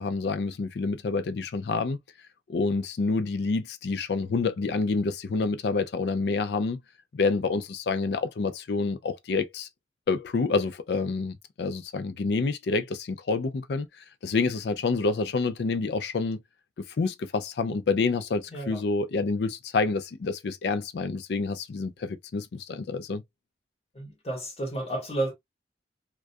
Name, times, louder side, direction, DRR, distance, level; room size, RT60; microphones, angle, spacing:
voice 1, 0.0-2.0 2.5-6.8 7.1-9.7 10.1-13.9 14.2-16.4 17.0-23.2, left 4 dB, 70° left, 0.4 m, -28 dB
voice 2, 18.5-18.8 23.9-25.3, right 2 dB, 35° left, 1.0 m, -31 dB
2.3 x 2.2 x 2.5 m
head